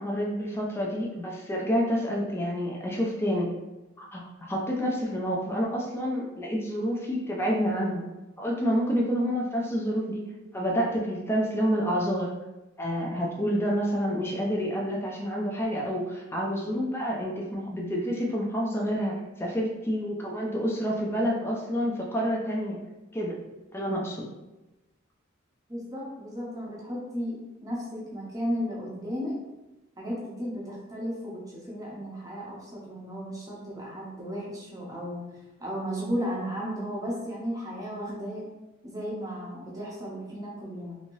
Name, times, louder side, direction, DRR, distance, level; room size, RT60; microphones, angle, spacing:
voice 1, 0.0-3.5 4.0-8.0 8.4-10.2 10.5-12.3 12.8-22.8 23.1-23.4 23.7-24.3, equal, 10° left, -2 dB, 0.4 m, -28 dB
voice 2, 25.7-29.4 30.0-35.2 35.6-38.5 38.8-41.0, equal, 15° right, -4 dB, 0.7 m, -34 dB
3.0 x 2.8 x 2.6 m, 1.0 s
head